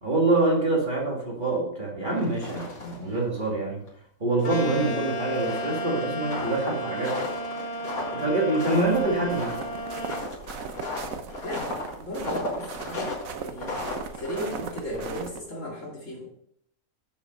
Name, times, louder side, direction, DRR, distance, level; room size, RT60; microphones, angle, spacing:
voice 1, 0.0-3.8 4.2-7.2 8.1-9.5, right 2 dB, 35° right, -2 dB, 2.2 m, -25 dB
sound 1, 2.1-3.1 3.4-3.5 3.9-4.0 4.7-15.5, left 2 dB, 85° left, 2.7 m, -35 dB
sound 2, 4.4-10.3, right 1 dB, 40° left, 0.6 m, -33 dB
sound 3, 8.7-15.4, right 6 dB, 70° right, 1.2 m, -39 dB
voice 2, 12.0-13.7 14.1-16.3, equal, 60° left, -3 dB, 3.0 m, -36 dB
7.1 x 7.0 x 5.3 m, 0.69 s
omnidirectional pair, 1.5 m